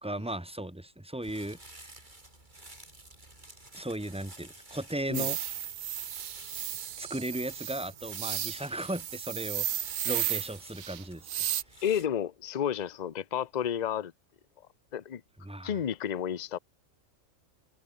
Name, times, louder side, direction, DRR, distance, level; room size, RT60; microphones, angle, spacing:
voice 1, 0.0-1.9 3.7-5.4 7.0-9.7 10.0-11.3 15.4-15.7, right 1 dB, 5° right, 1.1 m, -36 dB
sound 1, 1.2-12.1, right 2 dB, 30° right, 4.3 m, -51 dB
sound 2, 5.1-11.6, right 11 dB, 70° right, 1.2 m, -34 dB
voice 2, 11.8-14.1 14.9-15.2 15.6-16.6, left 9 dB, 40° left, 0.7 m, -31 dB
omnidirectional pair, 1.5 m